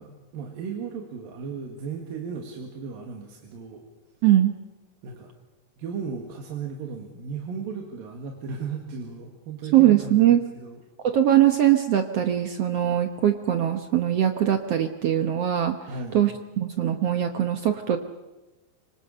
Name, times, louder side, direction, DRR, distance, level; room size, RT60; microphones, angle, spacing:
voice 1, 0.0-3.9 5.0-5.3 5.8-10.8 15.9-16.2, right 5 dB, 90° right, 2 dB, 3.8 m, -36 dB
voice 2, 4.2-4.5 9.7-10.4 11.0-15.8 16.1-18.0, right 11 dB, 65° right, 7 dB, 1.6 m, -21 dB
25.5 x 25.0 x 6.7 m, 1.1 s
omnidirectional pair, 3.9 m